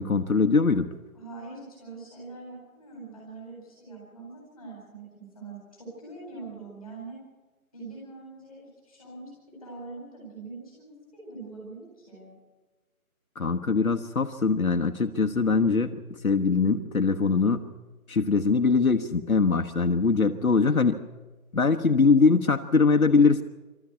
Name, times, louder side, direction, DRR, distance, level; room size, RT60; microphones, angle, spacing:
voice 1, 0.0-0.9 13.3-16.0 16.2-17.7 18.1-21.0 21.5-23.4, left 4 dB, 70° left, 4 dB, 1.3 m, -22 dB
voice 2, 1.1-7.2 7.7-12.3, right 3 dB, ahead, -6 dB, 7.7 m, -43 dB
22.0 x 14.5 x 8.3 m, 1.2 s
figure-of-eight pair, 175°, 43 cm